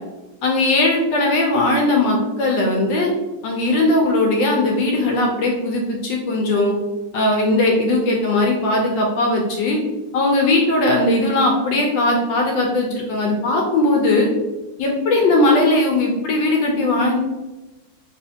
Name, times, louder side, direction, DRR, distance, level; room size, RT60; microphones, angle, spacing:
voice 1, 0.4-3.1 3.4-6.7 7.1-9.8 10.1-14.3 14.8-17.2, left 2 dB, 75° left, 0 dB, 1.1 m, -18 dB
3.2 x 2.9 x 2.7 m, 1.1 s
omnidirectional pair, 2.3 m